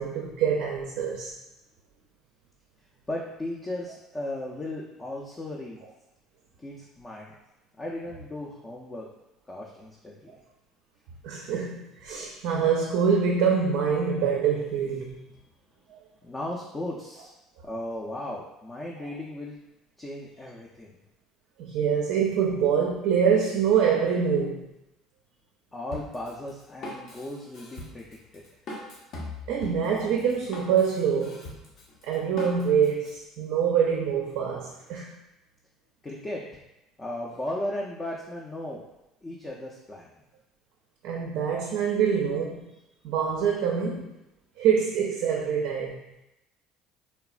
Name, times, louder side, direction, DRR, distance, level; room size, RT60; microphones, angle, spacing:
voice 1, 0.0-1.3 11.2-15.2 15.9-16.0 21.6-24.7 29.5-31.4 32.0-35.1 41.0-42.7 43.0-44.1 44.6-46.0, right 7 dB, 70° right, -1 dB, 0.4 m, -25 dB
voice 2, 3.1-5.8 6.6-7.3 7.8-9.1 9.5-10.3 16.2-17.3 17.7-19.6 20.0-21.0 25.7-28.4 36.0-36.6 37.0-38.9 39.2-40.1, left 1 dB, 25° left, -3 dB, 0.4 m, -36 dB
Drum kit, 25.9-33.1, left 1 dB, 60° left, 0.7 m, -41 dB
3.1 x 2.0 x 2.4 m, 0.91 s
supercardioid pair, 85°, 0 cm